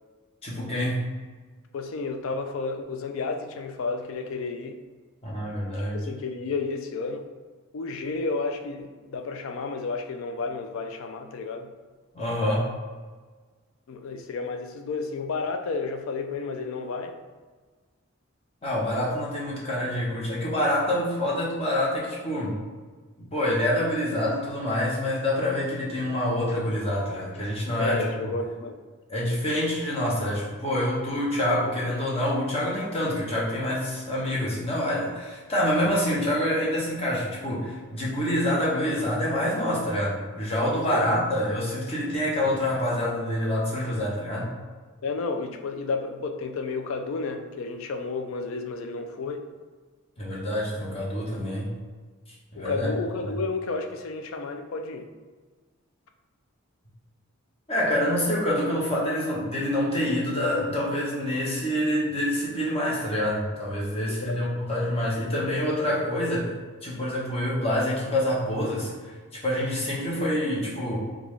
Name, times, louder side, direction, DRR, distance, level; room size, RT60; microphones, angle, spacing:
voice 1, 0.4-1.0 5.2-6.0 12.1-12.7 18.6-22.6 23.2-28.0 29.1-44.5 50.2-51.7 52.5-52.9 57.7-66.5 66.8-68.9 69.3-71.0, left 1 dB, 30° left, -5 dB, 0.8 m, -26 dB
voice 2, 1.7-4.8 5.7-7.3 7.7-11.7 13.9-17.2 27.8-28.8 40.9-41.1 45.0-49.5 52.6-55.1 64.1-64.4, left 3 dB, 70° left, 6 dB, 0.4 m, -31 dB
3.7 x 2.3 x 3.1 m, 1.4 s
head